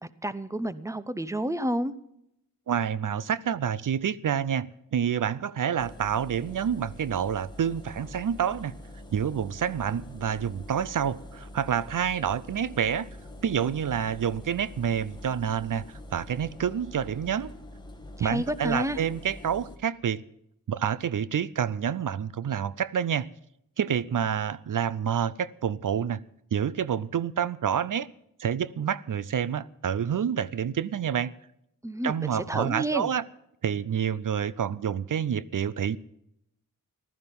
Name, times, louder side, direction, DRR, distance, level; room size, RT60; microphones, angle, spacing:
voice 1, 0.0-1.9 18.2-19.0 31.8-33.1, right 1 dB, 10° right, 0.7 m, -30 dB
voice 2, 2.7-8.8 9.1-13.1 13.4-15.8 16.1-17.5 18.2-20.2 20.7-23.3 23.8-26.2 26.5-28.1 28.4-31.3 32.0-33.2 33.6-36.0, right 8 dB, 65° right, 0.5 m, -28 dB
Engine, 5.8-19.8, left 1 dB, 10° left, 1.7 m, -45 dB
15.0 x 12.5 x 5.3 m
wide cardioid pair, 100°, 34 cm